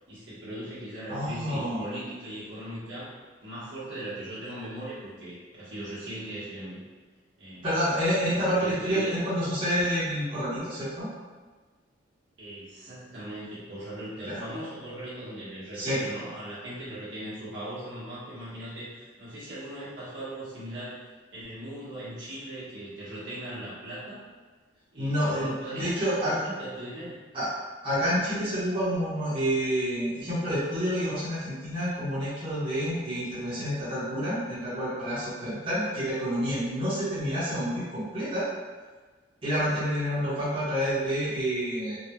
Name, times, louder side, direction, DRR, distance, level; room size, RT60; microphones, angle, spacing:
voice 1, 0.1-3.1 3.4-6.8 7.4-7.7 8.2-9.2 12.4-21.0 21.3-24.2 24.9-27.2, right 1 dB, 70° right, -10 dB, 1.4 m, -39 dB
voice 2, 1.1-1.8 7.6-11.1 14.3-14.4 15.7-16.0 25.0-26.4 27.3-27.5 27.8-38.4 39.4-42.0, equal, 25° right, -12 dB, 1.2 m, -28 dB
3.8 x 2.4 x 3.0 m, 1.4 s
head